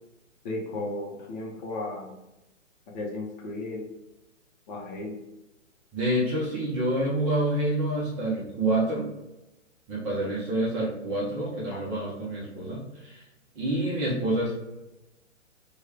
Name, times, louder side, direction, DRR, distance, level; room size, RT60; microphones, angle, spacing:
voice 1, 0.4-2.1 2.9-3.9 4.7-5.2, left 2 dB, 35° left, -2 dB, 0.8 m, -34 dB
voice 2, 5.9-9.1 9.9-13.2 13.5-14.5, right 1 dB, 20° right, -6 dB, 0.7 m, -27 dB
3.1 x 2.3 x 3.5 m, 0.97 s
figure-of-eight pair, 120°, 38 cm